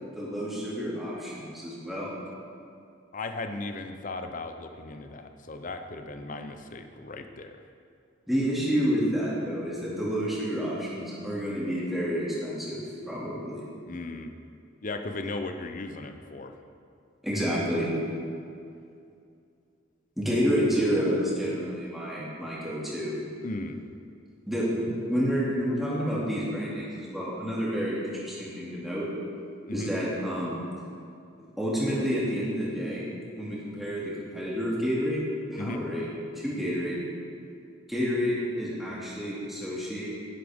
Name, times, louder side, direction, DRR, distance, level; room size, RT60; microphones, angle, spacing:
voice 1, 0.1-2.1 8.3-13.6 17.2-17.9 20.2-23.1 24.5-29.1 29.7-30.6 31.6-35.2 35.5-36.1 36.4-37.0 37.9-40.1, equal, ahead, -8 dB, 2.4 m, -29 dB
voice 2, 3.1-7.5 13.9-14.3 14.8-16.5 23.4-23.8 29.7-29.9 35.6-35.8, left 2 dB, 40° left, 7 dB, 0.6 m, -36 dB
11.0 x 9.9 x 3.6 m, 2.4 s
head